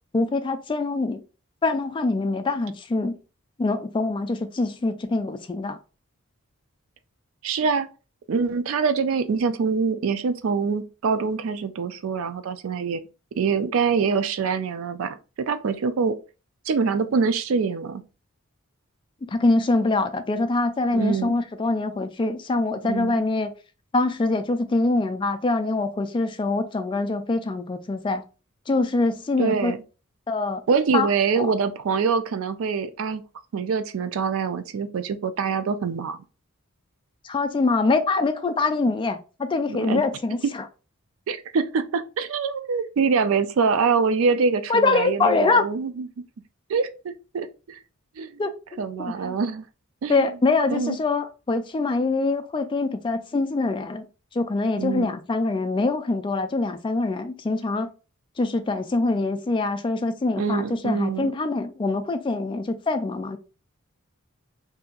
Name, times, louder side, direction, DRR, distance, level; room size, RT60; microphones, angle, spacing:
voice 1, 0.1-1.2 1.6-3.2 3.6-5.8 19.2-23.5 23.9-28.2 28.7-29.7 30.3-30.6 30.9-31.1 31.4-31.5 37.2-40.6 44.7-45.7 48.4-49.4 50.1-54.0 54.3-57.9 58.4-63.4, left 3 dB, 25° left, 0.3 m, -24 dB
voice 2, 7.4-7.9 8.3-13.1 13.4-15.2 15.5-16.2 16.7-18.0 20.9-21.4 22.8-23.2 29.4-29.8 30.7-33.2 33.5-36.2 39.7-40.0 41.3-46.1 46.7-47.8 48.2-48.4 48.8-49.6 50.0-50.3 50.7-51.0 54.8-55.1 60.4-61.3, right 5 dB, 70° right, 0.4 m, -24 dB
2.7 x 2.4 x 3.7 m
head